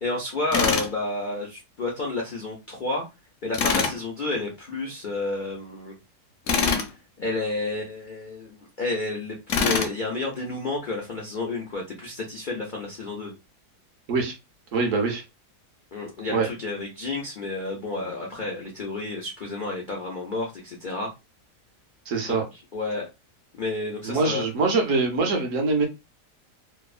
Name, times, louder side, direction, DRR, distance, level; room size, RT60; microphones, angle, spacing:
voice 1, 0.0-3.0 3.4-5.9 7.2-13.3 15.9-21.1 22.2-22.4 22.7-23.1 23.6-24.4, left 2 dB, 85° left, -1 dB, 0.4 m, -30 dB
Tools, 0.5-0.9 3.5-4.0 6.5-6.9 9.5-9.9, left 5 dB, 65° left, 0.8 m, -23 dB
voice 2, 14.7-15.2 16.3-16.5 22.1-22.5 24.0-25.8, right 3 dB, 60° right, 3 dB, 0.9 m, -23 dB
2.9 x 2.0 x 2.3 m, 0.24 s
omnidirectional pair, 1.8 m